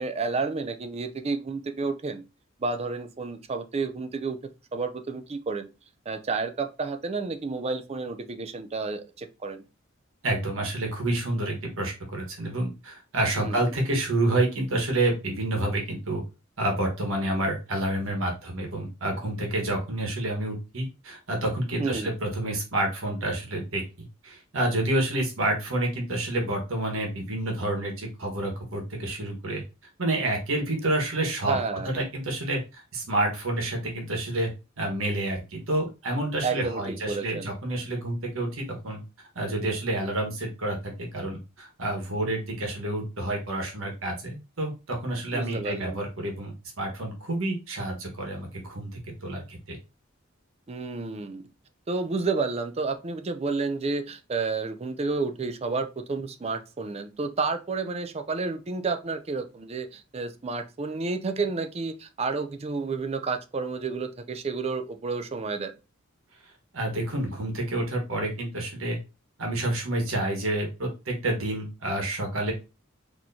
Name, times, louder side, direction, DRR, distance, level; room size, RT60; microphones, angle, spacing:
voice 1, 0.0-2.2 2.6-4.4 4.7-5.7 6.1-9.6 13.4-13.6 21.8-22.1 31.5-31.9 36.4-37.5 45.3-46.0 50.7-51.4 51.9-65.7, right 4 dB, 30° right, 8 dB, 0.4 m, -30 dB
voice 2, 10.2-16.2 16.6-23.8 24.2-29.6 30.0-31.6 31.8-34.5 34.8-39.0 39.3-48.9 49.2-49.8 66.7-69.0 69.4-72.5, right 1 dB, 80° right, 1 dB, 1.3 m, -29 dB
4.3 x 3.0 x 2.6 m, 0.29 s
head